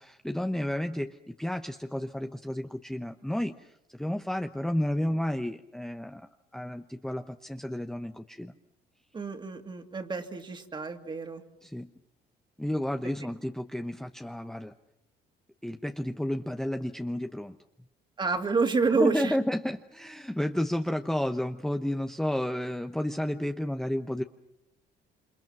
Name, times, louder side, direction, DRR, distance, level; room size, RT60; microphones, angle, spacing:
voice 1, 0.0-8.5 11.6-11.9 12.6-14.7 15.6-17.6 18.9-24.2, left 1 dB, 5° left, 5 dB, 0.9 m, -31 dB
voice 2, 9.1-11.4 18.2-19.4, right 4 dB, 25° right, 5 dB, 2.6 m, -28 dB
28.0 x 26.5 x 6.0 m, 0.82 s
cardioid pair, 110°, 17 cm